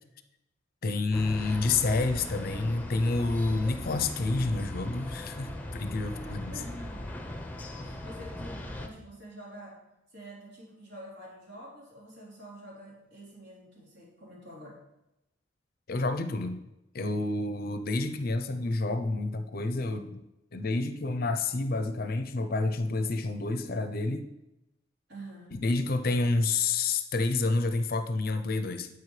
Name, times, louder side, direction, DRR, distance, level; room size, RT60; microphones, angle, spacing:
voice 1, 0.8-6.5 15.9-16.6 16.9-20.2 20.5-24.2 25.6-28.9, left 3 dB, 50° left, 9 dB, 0.6 m, -29 dB
sound 1, 1.1-8.9, left 1 dB, 10° left, 0.7 m, -39 dB
voice 2, 6.1-7.1 7.8-9.8 10.1-14.8 25.1-25.6, right 1 dB, 70° right, -5 dB, 3.8 m, -47 dB
9.6 x 8.1 x 3.2 m, 0.91 s
head